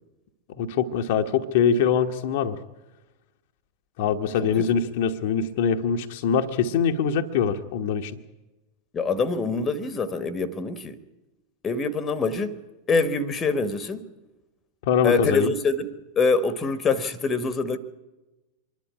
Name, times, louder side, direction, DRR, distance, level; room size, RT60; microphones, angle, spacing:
voice 1, 0.6-2.6 4.0-8.2 14.9-15.5, left 7 dB, 50° left, 1.2 m, -23 dB
voice 2, 8.9-11.0 11.6-12.6 12.9-14.1 15.0-17.8, left 4 dB, 20° left, 1.3 m, -25 dB
25.0 x 11.5 x 9.8 m
figure-of-eight pair, 90°, 0 cm